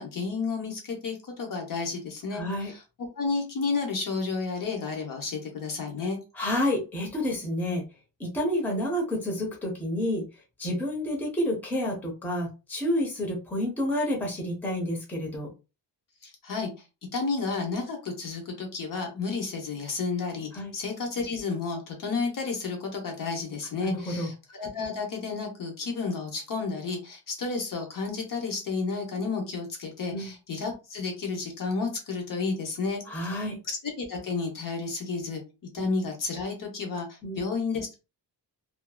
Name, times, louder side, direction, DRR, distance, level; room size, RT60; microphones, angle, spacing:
voice 1, 0.0-2.8 3.2-6.2 16.2-16.7 17.1-35.4 35.7-38.0, left 4 dB, 50° left, 2 dB, 0.8 m, -31 dB
voice 2, 2.3-2.7 6.4-7.8 8.2-10.3 10.6-15.5 20.5-20.7 23.8-24.3 30.1-30.3 33.1-33.6 37.2-37.4, left 1 dB, 5° left, -1 dB, 0.6 m, -29 dB
2.6 x 2.4 x 2.2 m, 0.29 s
wide cardioid pair, 175°, 42 cm